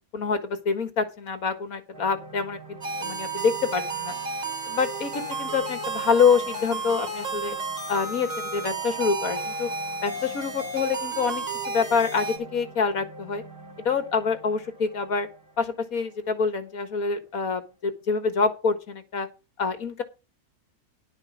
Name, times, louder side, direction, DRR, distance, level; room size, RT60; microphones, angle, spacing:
voice 1, 0.1-4.1 4.7-7.6 7.9-9.7 10.0-13.4 13.8-15.3 15.6-19.3 19.6-20.0, left 5 dB, 65° left, 9 dB, 2.0 m, -26 dB
sound 1, 1.9-18.2, right 3 dB, 40° right, 2.8 m, -45 dB
sound 2, 2.8-12.4, right 3 dB, 60° right, 3.8 m, -32 dB
sound 3, 5.3-11.0, right 1 dB, 20° right, 7.8 m, -53 dB
11.0 x 5.5 x 7.1 m, 0.29 s
omnidirectional pair, 1.6 m